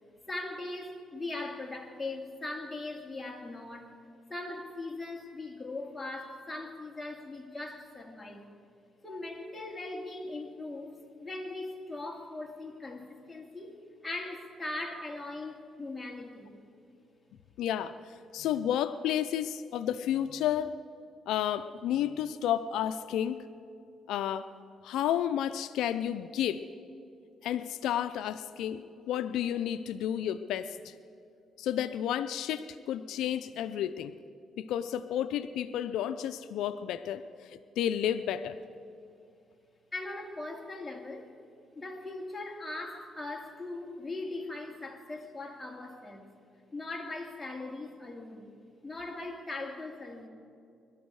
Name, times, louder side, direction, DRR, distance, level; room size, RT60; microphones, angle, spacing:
voice 1, 0.3-4.0 4.3-8.5 9.0-16.6 39.9-41.3 41.8-46.3 46.7-48.6 48.8-50.3, left 2 dB, 15° left, 2.2 m, -40 dB
voice 2, 17.6-20.7 21.3-23.4 24.1-24.5 24.8-26.6 27.4-30.9 31.6-34.1 34.6-38.6, left 10 dB, 85° left, 0.5 m, -31 dB
22.0 x 12.5 x 4.8 m
cardioid pair, 90°, 0 cm